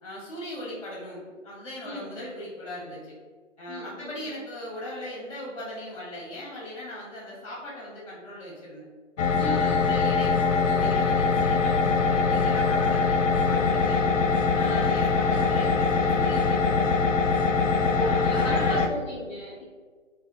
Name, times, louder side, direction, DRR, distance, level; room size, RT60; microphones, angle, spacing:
voice 1, 0.0-3.1 3.6-8.8 9.4-14.1 14.5-17.0 18.0-18.9, left 1 dB, 25° left, -5 dB, 1.2 m, -38 dB
voice 2, 3.7-4.1 9.4-10.4 14.6-14.9 17.8-19.6, equal, 5° left, -8 dB, 0.8 m, -35 dB
sound 1, 9.2-18.9, left 4 dB, 70° left, 0.5 m, -23 dB
3.4 x 2.8 x 3.8 m, 1.5 s
figure-of-eight pair, 155°, 39 cm